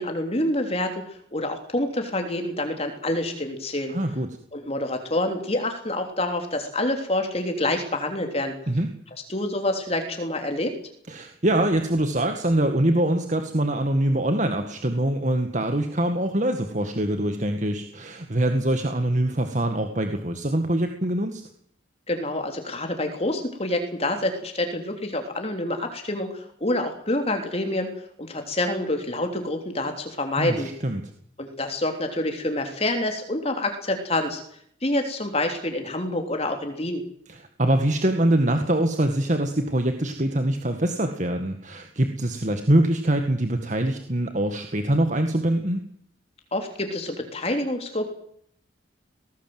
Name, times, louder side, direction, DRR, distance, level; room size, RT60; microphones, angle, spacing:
voice 1, 0.0-3.9 4.5-8.5 9.3-10.7 22.1-27.9 28.2-30.7 31.4-34.4 34.8-37.0 46.5-48.1, left 1 dB, 35° left, 5 dB, 3.3 m, -27 dB
voice 2, 3.9-4.3 8.7-8.9 11.1-21.4 30.4-31.0 37.3-45.8, right 1 dB, 40° right, 6 dB, 2.0 m, -24 dB
23.5 x 18.5 x 7.9 m, 0.65 s
head